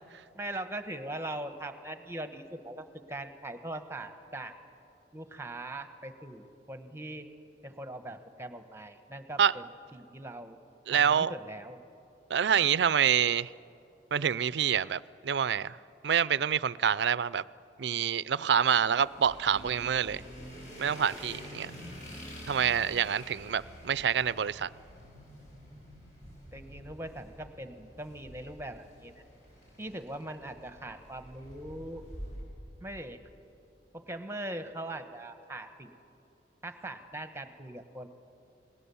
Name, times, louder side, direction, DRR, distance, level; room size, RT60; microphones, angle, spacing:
voice 1, 0.3-4.5 5.1-7.3 7.6-10.6 10.9-11.8 26.5-29.2 29.8-32.0 32.8-33.2 33.9-35.9 36.6-38.1, right 1 dB, 15° right, 1.1 m, -41 dB
voice 2, 10.9-11.3 12.3-13.5 14.1-15.8 16.0-17.4 17.8-20.2 20.8-21.7 22.5-24.7, right 8 dB, 80° right, 0.5 m, -27 dB
sound 1, 18.5-32.4, equal, 45° left, 7.4 m, -48 dB
29.0 x 19.5 x 7.0 m
head